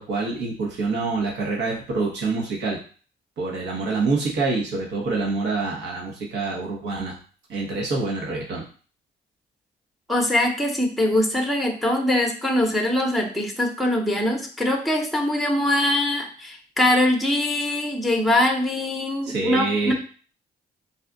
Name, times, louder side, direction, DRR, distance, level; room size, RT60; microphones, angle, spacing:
voice 1, 0.0-2.8 3.4-7.2 7.5-8.6 19.2-19.9, right 3 dB, 70° right, -3 dB, 1.2 m, -26 dB
voice 2, 10.1-19.9, left 1 dB, ahead, 2 dB, 0.9 m, -22 dB
4.2 x 2.4 x 3.9 m, 0.39 s
cardioid pair, 85°, 18 cm